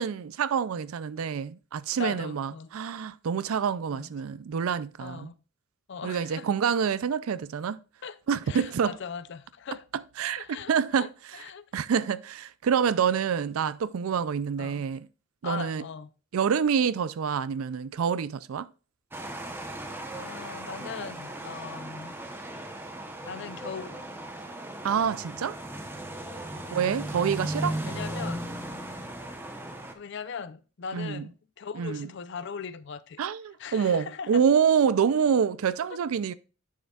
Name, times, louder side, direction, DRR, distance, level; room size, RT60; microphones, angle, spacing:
voice 1, 0.0-5.3 6.0-7.8 8.3-9.0 10.2-11.4 11.7-15.1 15.4-15.8 16.3-18.7 24.8-25.6 26.7-27.8 30.9-31.3 31.7-32.1 33.2-36.3, right 7 dB, 85° right, 0.4 m, -27 dB
voice 2, 2.0-2.7 3.9-4.1 5.0-5.3 5.9-6.5 8.0-8.2 8.5-9.8 10.4-10.7 11.0-11.1 11.3-11.7 14.6-14.8 15.4-16.1 20.1-22.2 23.3-24.0 26.5-26.6 27.9-28.4 30.0-33.2 33.6-34.4 35.9-36.0, left 6 dB, 55° left, 0.5 m, -39 dB
sound 1, 19.1-29.9, right 1 dB, 10° right, 0.9 m, -37 dB
10.0 x 6.4 x 2.3 m
head